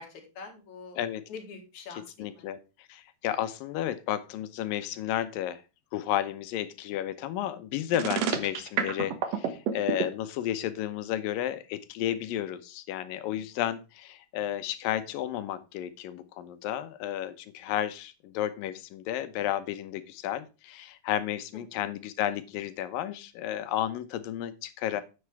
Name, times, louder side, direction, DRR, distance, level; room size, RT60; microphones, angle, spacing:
voice 1, 0.0-1.0 1.3-2.5 21.7-21.8 24.9-25.0, left 4 dB, 60° left, 3 dB, 3.3 m, -45 dB
voice 2, 1.9-2.6 2.9-5.6 5.9-25.0, left 12 dB, 90° left, 12 dB, 2.6 m, -32 dB
sound 1, 7.9-10.1, right 8 dB, 60° right, 1.9 m, -28 dB
9.8 x 7.9 x 3.5 m, 0.30 s
omnidirectional pair, 3.9 m